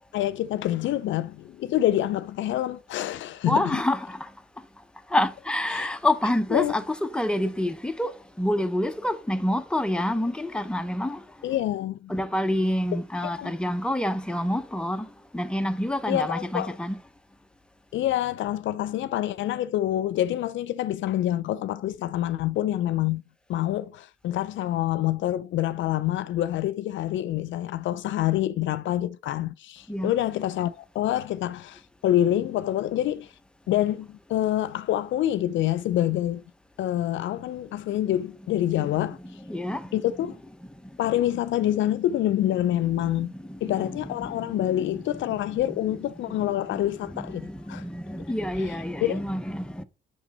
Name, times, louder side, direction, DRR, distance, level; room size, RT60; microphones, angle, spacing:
voice 1, 0.1-3.8 5.7-5.9 6.5-6.7 11.4-12.1 13.4-13.5 16.1-16.8 17.9-23.2 23.5-33.3 33.7-36.4 36.8-39.2 39.9-40.4 41.0-43.3 43.6-47.4 47.7-47.8 49.0-49.2, left 13 dB, 70° left, 0.4 m, -26 dB
voice 2, 3.4-4.3 5.1-11.2 12.1-17.0 29.9-30.1 39.2-40.0 42.9-44.7 45.3-45.4 45.7-46.0 46.4-49.8, left 1 dB, 5° left, 0.9 m, -28 dB
8.2 x 6.2 x 4.2 m
cardioid pair, 90°, 20 cm